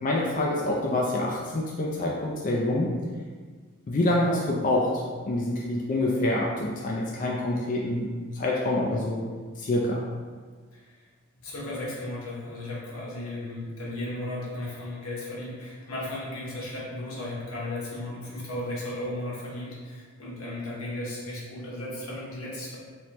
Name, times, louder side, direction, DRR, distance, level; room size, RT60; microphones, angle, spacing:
voice 1, 0.0-2.9 3.9-8.1 8.3-9.3 9.6-10.0, left 1 dB, 35° left, -3 dB, 0.3 m, -26 dB
voice 2, 11.4-22.8, left 1 dB, 85° left, -5 dB, 1.0 m, -35 dB
3.2 x 3.1 x 2.9 m, 1.5 s
head